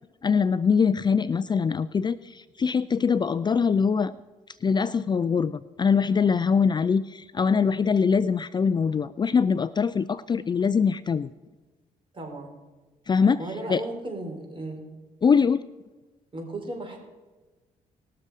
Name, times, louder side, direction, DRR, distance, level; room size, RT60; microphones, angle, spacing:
voice 1, 0.2-4.1 4.6-11.3 13.1-13.4 13.7-13.8 15.2-15.6, left 6 dB, 30° left, 14 dB, 0.4 m, -23 dB
voice 2, 12.1-12.5 13.4-14.9 16.3-17.0, right 2 dB, 35° right, 2 dB, 3.9 m, -35 dB
19.5 x 6.7 x 4.9 m, 1.2 s
cardioid pair, 70°, 14 cm